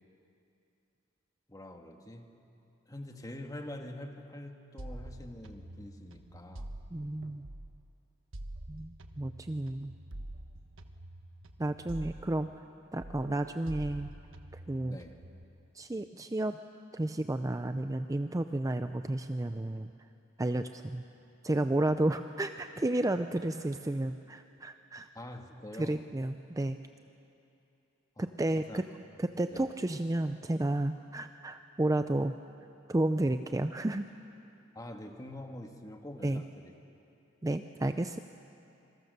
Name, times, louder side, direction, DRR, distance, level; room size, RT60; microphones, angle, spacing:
voice 1, 1.5-2.3 2.9-6.7 14.8-15.2 25.1-26.0 28.2-28.3 28.6-28.8 29.5-29.7 34.7-36.7, left 1 dB, 20° left, 4 dB, 1.7 m, -45 dB
sound 1, 4.8-7.9 8.3-12.7 13.0-15.4, right 1 dB, 70° right, 1.3 m, -46 dB
voice 2, 6.9-7.5 8.7-9.9 11.6-12.5 12.9-14.1 14.7-15.0 15.7-16.6 16.9-19.9 20.4-21.1 21.4-25.1 25.8-26.8 28.2-28.8 29.2-32.3 32.9-34.1 36.2-36.4 37.4-38.2, right 1 dB, 15° right, 9 dB, 0.5 m, -32 dB
27.0 x 23.0 x 6.8 m, 2.7 s
head